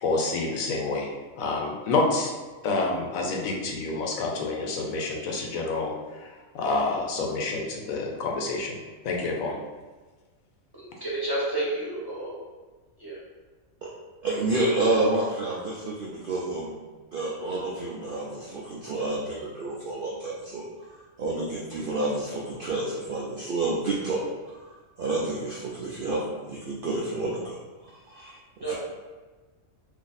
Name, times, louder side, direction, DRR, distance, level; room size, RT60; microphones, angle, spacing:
voice 1, 0.0-1.1 1.4-2.3 2.6-8.8 9.0-9.6, left 3 dB, 85° left, 0 dB, 1.0 m, -28 dB
voice 2, 10.8-12.3 13.0-13.2 28.6-28.7, right 2 dB, 20° right, -8 dB, 0.7 m, -30 dB
voice 3, 14.2-16.8 17.1-24.2 24.5-27.6 27.8-28.4 28.7-28.8, right 2 dB, 70° right, -4 dB, 0.5 m, -29 dB
2.8 x 2.5 x 3.9 m, 1.3 s
omnidirectional pair, 1.4 m